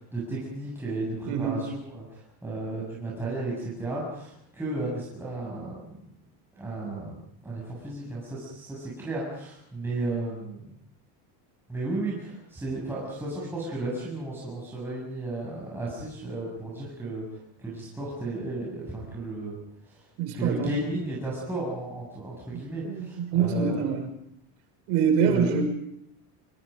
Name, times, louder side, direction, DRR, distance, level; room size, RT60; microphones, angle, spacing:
voice 1, 0.0-6.0 6.6-10.7 11.7-17.2 17.6-19.6 19.9-20.0 20.3-23.9 25.2-25.5, right 2 dB, 5° right, -6 dB, 7.5 m, -34 dB
voice 2, 1.3-1.6 20.2-20.7 22.5-24.1 24.9-25.6, right 6 dB, 75° right, 4 dB, 6.0 m, -25 dB
26.0 x 25.5 x 5.3 m, 0.75 s
cardioid pair, 140°, 43 cm